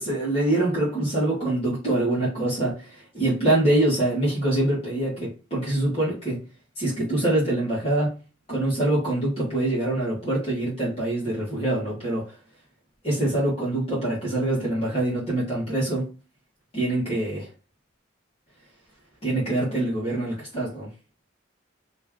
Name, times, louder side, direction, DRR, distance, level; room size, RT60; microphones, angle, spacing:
voice 1, 0.0-6.4 6.7-8.2 8.5-12.3 13.0-16.1 16.7-17.5 19.2-20.9, right 1 dB, 30° left, 1.6 m, -24 dB
3.1 x 3.1 x 3.6 m
head